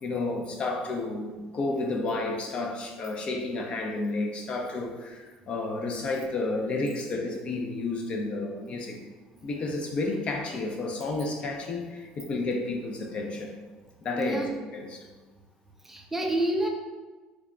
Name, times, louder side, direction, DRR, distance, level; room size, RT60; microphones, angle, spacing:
voice 1, 0.0-9.0 9.4-13.5 14.0-15.1, left 2 dB, 40° left, 2 dB, 0.5 m, -31 dB
voice 2, 14.1-14.6 15.8-16.7, right 1 dB, 10° right, 1 dB, 0.4 m, -28 dB
3.4 x 2.1 x 3.7 m, 1.3 s
cardioid pair, 110°, 3 cm